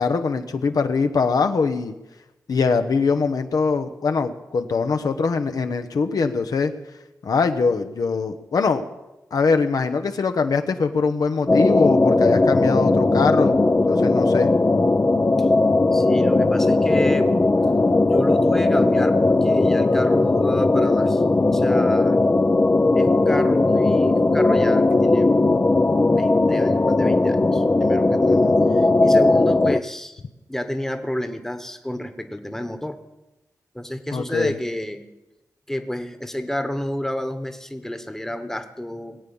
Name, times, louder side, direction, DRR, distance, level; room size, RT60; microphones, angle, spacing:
voice 1, 0.0-1.9 2.5-6.7 7.2-8.8 9.3-14.5 28.3-28.6 34.1-34.5, left 4 dB, 75° left, 7 dB, 1.0 m, -22 dB
sound 1, 11.5-29.8, left 2 dB, 30° left, 0.6 m, -18 dB
voice 2, 15.9-17.3 18.1-22.2 22.9-25.3 26.1-28.4 28.7-30.2 30.5-33.0 33.7-35.0 35.7-39.2, left 1 dB, 5° left, 8 dB, 1.2 m, -30 dB
20.5 x 8.5 x 7.1 m, 0.99 s
wide cardioid pair, 90°, 6 cm